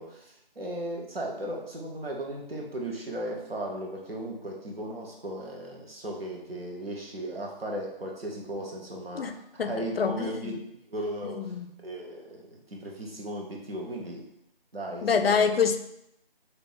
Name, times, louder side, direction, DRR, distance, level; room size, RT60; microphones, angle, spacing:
voice 1, 0.0-11.6 11.8-14.2 14.7-15.5, right 1 dB, 80° right, -1 dB, 1.1 m, -36 dB
voice 2, 9.6-10.5 11.2-11.7 15.0-15.8, left 6 dB, 80° left, 8 dB, 0.4 m, -26 dB
2.7 x 2.1 x 3.9 m, 0.78 s
figure-of-eight pair, 180°, 29 cm